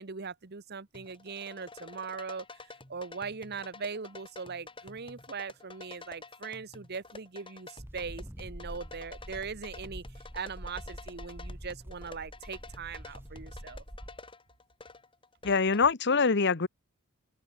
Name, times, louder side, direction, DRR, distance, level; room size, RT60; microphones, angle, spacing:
voice 1, 0.0-2.4 2.9-10.0 10.3-13.8, right 5 dB, 50° right, 1.0 m, -40 dB
sound 1, 0.9-15.8, left 3 dB, 25° left, 3.2 m, -50 dB
sound 2, 7.8-14.2, equal, 10° right, 1.6 m, -45 dB
voice 2, 15.4-16.7, left 4 dB, 50° left, 1.1 m, -24 dB
open air
head